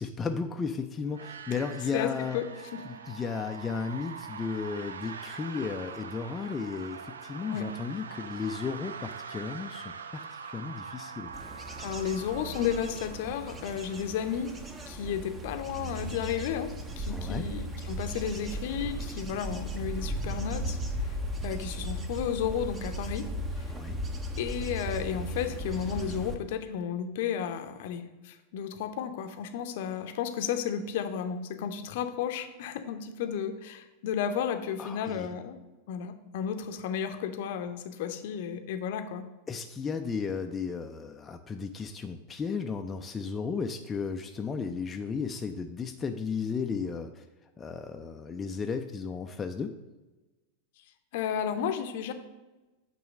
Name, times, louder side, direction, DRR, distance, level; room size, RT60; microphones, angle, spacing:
voice 1, 0.0-2.4 2.9-11.3 17.1-17.5 23.7-24.0 34.8-35.3 39.5-47.3 47.6-49.7, left 5 dB, 20° left, 5 dB, 0.4 m, -34 dB
sound 1, 1.1-14.8, right 6 dB, 70° right, 0.4 m, -44 dB
voice 2, 1.9-2.4 2.7-2.8 7.5-7.6 11.8-14.5 14.9-16.7 17.0-21.2 21.4-23.3 23.6-23.7 24.4-35.6 35.9-39.3 51.1-52.1, left 8 dB, 50° left, 8 dB, 0.7 m, -33 dB
Bird / Insect / Wind, 11.3-26.3, right 1 dB, 20° right, 0.8 m, -36 dB
8.7 x 3.1 x 6.3 m, 1.1 s
figure-of-eight pair, 90°, 0 cm